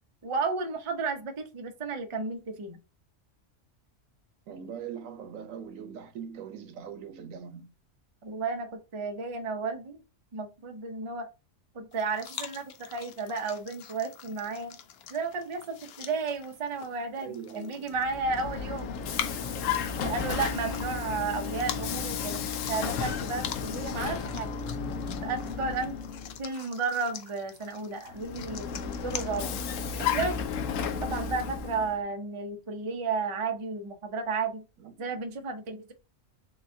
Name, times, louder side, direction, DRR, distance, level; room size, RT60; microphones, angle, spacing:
voice 1, 0.2-2.8 8.2-10.0 10.3-11.3 11.7-14.8 15.1-18.9 20.0-22.4 22.7-24.5 25.2-26.0 26.4-29.5 30.0-30.3 31.0-34.6 35.0-35.9, right 4 dB, 35° right, 0.5 m, -33 dB
voice 2, 4.5-7.7 17.2-18.0 20.0-20.3 34.8-35.0, right 7 dB, 85° right, 1.1 m, -41 dB
sound 1, 11.9-29.7, left 8 dB, 60° left, 0.7 m, -44 dB
Vehicle, 17.9-26.4 28.1-32.0, left 6 dB, 85° left, 1.0 m, -33 dB
6.7 x 2.3 x 2.6 m
omnidirectional pair, 1.3 m